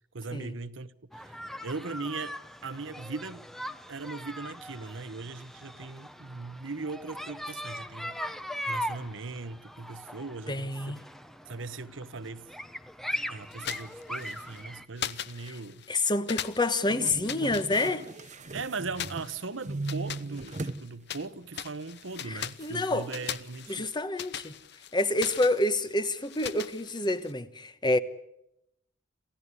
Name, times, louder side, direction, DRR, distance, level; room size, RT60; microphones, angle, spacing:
voice 1, 0.1-3.5 3.9-8.3 8.6-11.0 11.5-12.5 13.3-15.8 17.5-17.7 18.5-23.9, right 3 dB, 75° right, 1.0 m, -39 dB
sound 1, 1.1-14.9, equal, ahead, 0.9 m, -40 dB
voice 2, 10.5-11.0 15.5-15.6 15.9-18.0 22.3-23.1 23.7-24.5 24.9-28.0, left 2 dB, 25° left, 1.2 m, -28 dB
sound 2, 13.5-14.6 15.0-15.9 16.3-18.4 18.9-21.3 21.5-27.3, left 10 dB, 60° left, 0.9 m, -40 dB
sound 3, 16.9-19.3 19.6-20.8 21.2-21.3 22.6-22.7, right 3 dB, 40° right, 0.8 m, -37 dB
27.5 x 16.0 x 9.7 m
head